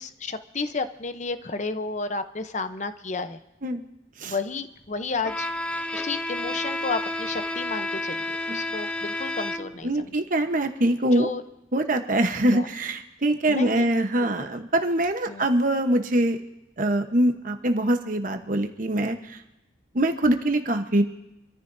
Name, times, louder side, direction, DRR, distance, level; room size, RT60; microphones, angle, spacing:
voice 1, 0.0-3.4 4.2-5.5 5.9-10.1 11.1-11.4 12.4-12.7 13.5-13.9 14.4-14.5 15.3-15.5, left 3 dB, 40° left, 10 dB, 0.8 m, -32 dB
Bowed string instrument, 5.2-9.9, left 2 dB, 5° left, 0.5 m, -30 dB
voice 2, 9.8-11.3 11.7-16.4 16.8-19.4 19.9-21.0, right 1 dB, 45° right, 6 dB, 1.0 m, -23 dB
27.0 x 14.5 x 2.7 m, 0.92 s
head